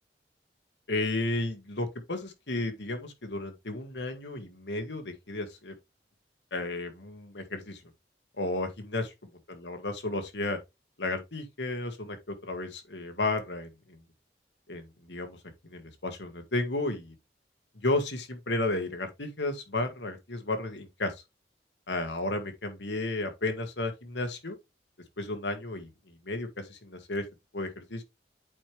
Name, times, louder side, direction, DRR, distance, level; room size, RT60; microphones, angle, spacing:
voice 1, 0.9-5.7 6.5-7.8 8.4-9.1 9.5-10.6 11.0-13.7 14.7-15.4 15.6-17.1 17.8-21.1 21.9-24.6 25.2-25.9 26.2-27.2 27.5-28.0, left 2 dB, 85° left, 1.8 m, -33 dB
8.6 x 4.6 x 3.4 m
head